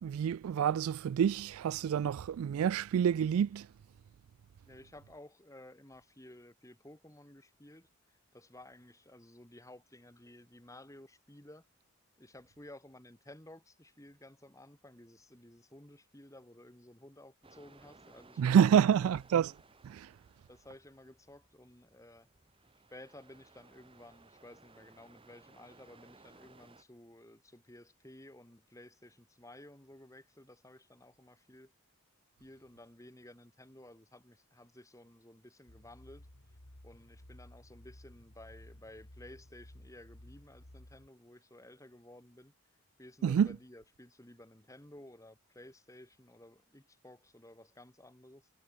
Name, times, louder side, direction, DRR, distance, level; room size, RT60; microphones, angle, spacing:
voice 1, 0.0-3.7 18.4-19.5 19.8-20.1 43.2-43.5, right 8 dB, 80° right, 0.3 m, -28 dB
voice 2, 4.7-11.7 12.2-19.1 20.0-20.1 20.5-22.3 22.9-31.7 32.4-36.6 36.8-42.5 43.0-48.5, left 1 dB, 15° left, 2.1 m, -55 dB
sound 1, 17.4-26.8, right 3 dB, 25° right, 1.4 m, -61 dB
sound 2, 35.7-41.1, left 1 dB, 85° left, 3.4 m, -55 dB
head